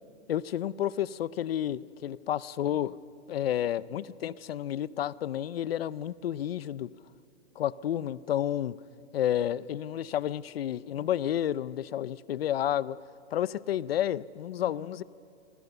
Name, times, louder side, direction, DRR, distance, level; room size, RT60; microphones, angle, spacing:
voice 1, 0.3-3.0 3.3-6.9 7.6-8.8 9.1-13.0 13.3-15.0, left 11 dB, 60° left, 19 dB, 0.7 m, -30 dB
27.5 x 21.5 x 6.9 m, 2.5 s
hypercardioid pair, 180°, 34 cm